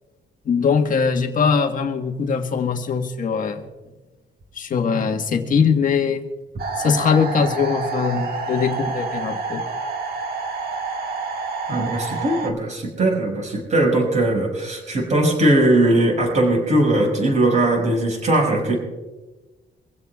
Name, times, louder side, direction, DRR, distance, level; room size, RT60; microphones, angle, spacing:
voice 1, 0.4-3.6 4.5-6.3 6.8-9.7, left 6 dB, 45° left, 5 dB, 1.5 m, -21 dB
sound 1, 6.6-12.5, right 4 dB, 55° right, 1.8 m, -28 dB
voice 2, 11.7-18.8, right 1 dB, 40° right, 0 dB, 5.6 m, -19 dB
25.0 x 16.0 x 2.4 m, 1.2 s
cardioid pair, 155°, 19 cm